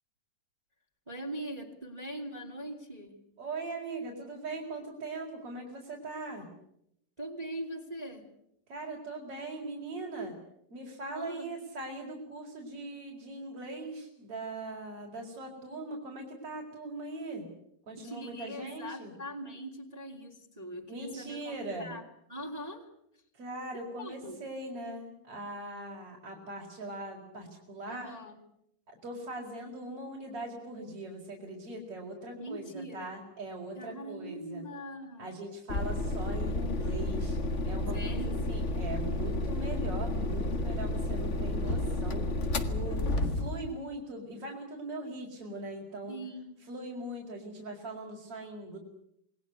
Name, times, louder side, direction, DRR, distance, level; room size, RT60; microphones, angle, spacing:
voice 1, 1.1-3.2 7.2-8.3 11.1-11.5 18.0-22.0 22.3-22.9 23.7-24.4 27.9-28.4 32.4-33.3 33.8-35.4 37.9-38.5 42.9-43.2 46.1-46.6, right 1 dB, 10° right, 1 dB, 2.5 m, -42 dB
voice 2, 3.4-6.5 8.7-10.3 10.7-17.5 17.9-19.1 20.9-21.9 23.3-28.1 28.9-34.6 35.2-37.4 37.7-46.2 46.7-48.8, right 2 dB, 40° right, -3 dB, 5.5 m, -40 dB
sound 1, 35.7-43.7, left 2 dB, 70° left, 0.6 m, -31 dB
28.0 x 20.5 x 8.3 m, 0.76 s
omnidirectional pair, 4.0 m